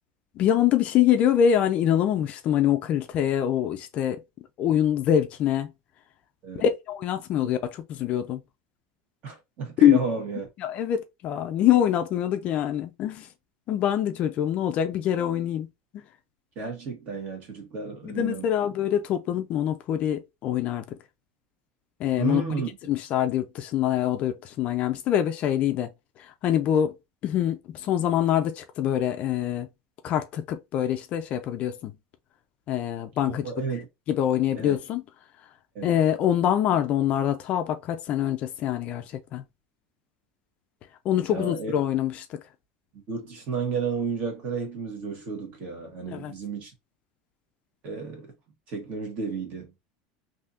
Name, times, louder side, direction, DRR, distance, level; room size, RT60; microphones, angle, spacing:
voice 1, 0.4-4.2 4.6-5.7 6.5-8.4 9.8-10.0 10.6-13.3 13.7-15.7 18.0-20.9 22.0-22.4 22.9-25.9 26.2-26.9 27.2-29.7 30.0-31.9 32.7-33.5 34.1-35.0 35.8-39.4 41.0-42.4 46.1-46.3, left 10 dB, 40° left, 0.4 m, -24 dB
voice 2, 9.2-10.4 16.5-18.4 22.1-22.7 33.3-33.9 34.5-34.8 35.7-35.9 41.3-41.7 43.1-46.7 47.8-48.3 48.7-49.7, right 4 dB, 40° right, 1.5 m, -32 dB
3.4 x 2.7 x 2.5 m
supercardioid pair, 155°, 4 cm